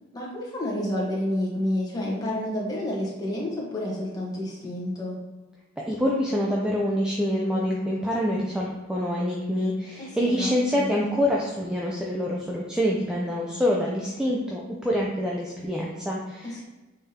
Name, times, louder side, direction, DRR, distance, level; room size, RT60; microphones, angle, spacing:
voice 1, 0.1-5.2 10.0-10.9 16.4-16.6, left 1 dB, 20° left, -5 dB, 1.1 m, -29 dB
voice 2, 5.8-16.6, equal, 5° right, -4 dB, 0.4 m, -26 dB
5.3 x 3.5 x 2.8 m, 1.2 s
head